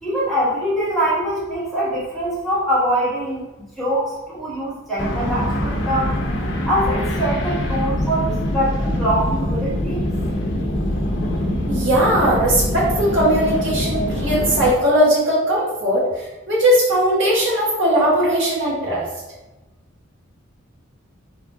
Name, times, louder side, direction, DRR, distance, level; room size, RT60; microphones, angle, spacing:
voice 1, 0.0-6.1 6.7-10.1, right 1 dB, ahead, -9 dB, 1.2 m, -23 dB
sound 1, 5.0-14.7, left 1 dB, 55° left, 0.7 m, -23 dB
voice 2, 11.7-19.1, equal, 60° right, -7 dB, 1.4 m, -18 dB
3.6 x 3.1 x 3.8 m, 1.0 s
head